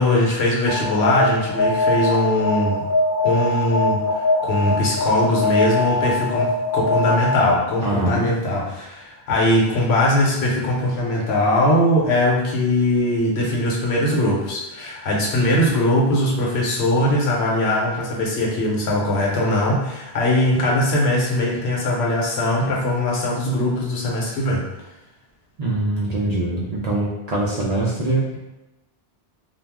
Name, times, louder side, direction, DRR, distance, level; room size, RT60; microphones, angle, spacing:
voice 1, 0.0-2.8 3.2-6.5 6.7-24.6, left 1 dB, 85° left, -3 dB, 1.0 m, -20 dB
Alarm, 0.7-7.7, left 2 dB, 55° left, 0.8 m, -22 dB
voice 2, 7.8-8.3 25.6-28.5, right 2 dB, 55° right, -5 dB, 0.5 m, -23 dB
2.3 x 2.0 x 3.3 m, 0.99 s
omnidirectional pair, 1.1 m